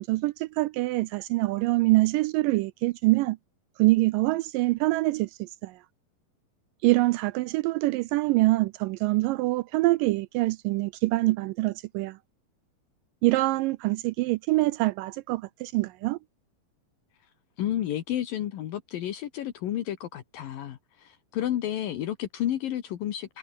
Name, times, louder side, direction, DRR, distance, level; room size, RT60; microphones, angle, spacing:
voice 1, 0.0-3.4 3.8-5.8 6.8-12.2 13.2-16.2, right 20 dB, 85° right, 1.9 m, -25 dB
voice 2, 17.6-23.4, left 12 dB, 70° left, 3.1 m, -31 dB
omnidirectional pair, 4.4 m